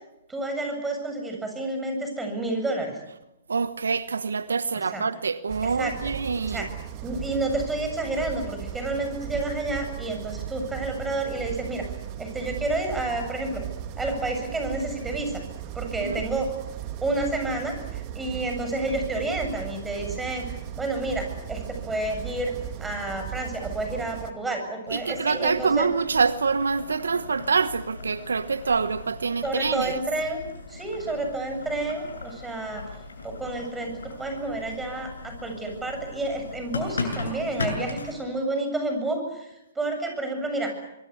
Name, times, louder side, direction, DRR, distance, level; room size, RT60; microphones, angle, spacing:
voice 1, 0.3-3.0 4.9-5.0 5.8-5.9 6.5-6.7 7.0-11.8 12.2-13.6 14.0-15.4 15.7-16.5 17.0-22.5 22.8-25.9 29.4-32.8 33.2-40.7, right 2 dB, 10° right, 7.7 m, -30 dB
voice 2, 3.5-6.7 16.0-16.3 24.9-30.0, right 5 dB, 80° right, 1.1 m, -26 dB
sound 1, 5.5-24.3, right 10 dB, 35° right, 2.4 m, -37 dB
Boiling, 24.9-38.1, left 3 dB, 80° left, 7.4 m, -37 dB
25.5 x 23.5 x 8.2 m
hypercardioid pair, 125°, 0 cm